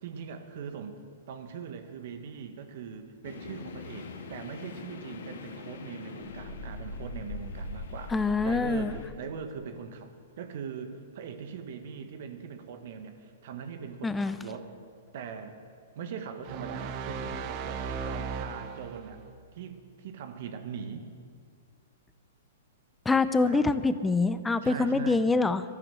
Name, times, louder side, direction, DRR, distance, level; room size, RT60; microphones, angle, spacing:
voice 1, 0.0-1.0 1.3-14.7 15.1-15.6 15.9-19.2 19.5-21.0 23.4-23.6 24.6-25.2, right 6 dB, 60° right, 7 dB, 1.6 m, -41 dB
sound 1, 3.2-9.1, left 3 dB, 70° left, 1.8 m, -41 dB
voice 2, 8.1-8.9 14.0-14.4 23.1-25.6, left 3 dB, 10° left, 12 dB, 0.7 m, -25 dB
sound 2, 16.4-19.2, right 5 dB, 40° right, 1.2 m, -36 dB
13.5 x 11.5 x 7.7 m, 2.1 s
hypercardioid pair, 120°, 0 cm